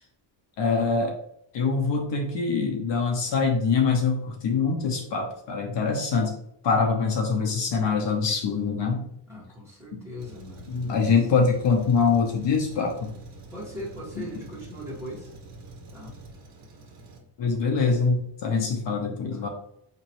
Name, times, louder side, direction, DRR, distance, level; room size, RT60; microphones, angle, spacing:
voice 1, 0.6-1.2 1.5-6.3 6.6-9.1 9.9-10.0 10.7-13.1 14.2-14.3 17.4-19.5, left 5 dB, 60° left, 2 dB, 0.8 m, -24 dB
voice 2, 9.3-11.1 13.5-15.3 15.9-16.2 19.3-19.5, equal, 5° right, -6 dB, 1.7 m, -40 dB
Truck, 10.2-17.2, right 2 dB, 65° right, 1.5 m, -45 dB
5.8 x 3.0 x 3.0 m, 0.75 s
cardioid pair, 175°, 48 cm